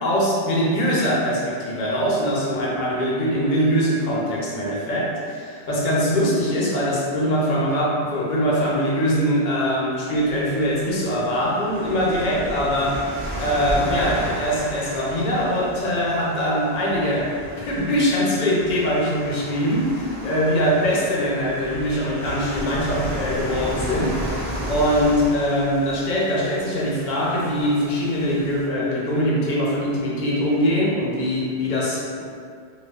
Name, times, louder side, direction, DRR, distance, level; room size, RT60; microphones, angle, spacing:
voice 1, 0.0-13.0 13.4-17.3 17.6-32.3, equal, 55° left, -5 dB, 0.6 m, -22 dB
sound 1, 10.1-28.7, equal, 25° right, 0.6 m, -34 dB
2.4 x 2.3 x 2.2 m, 2.2 s
omnidirectional pair, 1.1 m